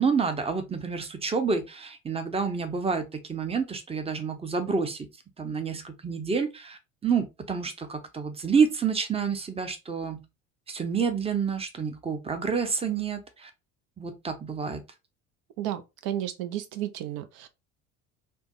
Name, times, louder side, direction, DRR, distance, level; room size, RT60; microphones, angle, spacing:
voice 1, 0.0-5.1 5.4-10.2 10.7-13.5 14.0-14.8, right 5 dB, 15° right, 0.6 m, -28 dB
voice 2, 15.6-17.5, right 12 dB, 60° right, 0.7 m, -33 dB
3.3 x 2.1 x 3.0 m
hypercardioid pair, 65°, 41 cm